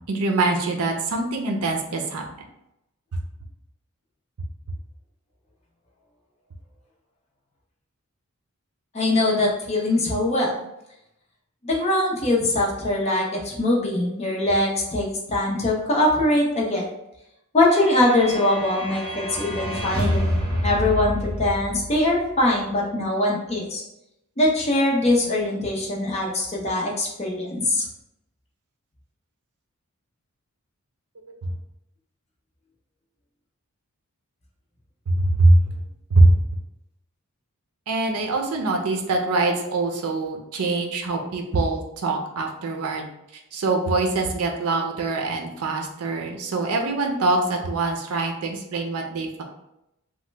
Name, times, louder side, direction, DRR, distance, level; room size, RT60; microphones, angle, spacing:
voice 1, 0.0-2.2 31.4-31.5 35.1-35.7 36.1-36.4 37.9-43.0 43.5-49.4, right 2 dB, 80° right, 2 dB, 0.5 m, -23 dB
voice 2, 8.9-10.5 11.6-16.8 17.5-23.8 24.4-27.8, left 1 dB, 30° left, -2 dB, 0.6 m, -22 dB
sound 1, 17.7-22.4, equal, 50° right, 1.1 m, -28 dB
3.0 x 2.1 x 3.3 m, 0.85 s
head